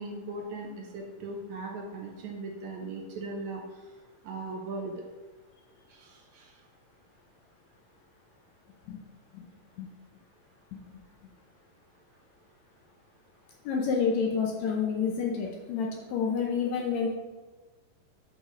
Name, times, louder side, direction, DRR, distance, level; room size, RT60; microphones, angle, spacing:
voice 1, 0.0-3.6 4.2-4.9 5.9-6.5, right 2 dB, 75° right, 1 dB, 1.8 m, -38 dB
voice 2, 13.7-17.1, left 6 dB, 75° left, 0 dB, 1.8 m, -29 dB
6.4 x 5.1 x 5.0 m, 1.3 s
omnidirectional pair, 3.8 m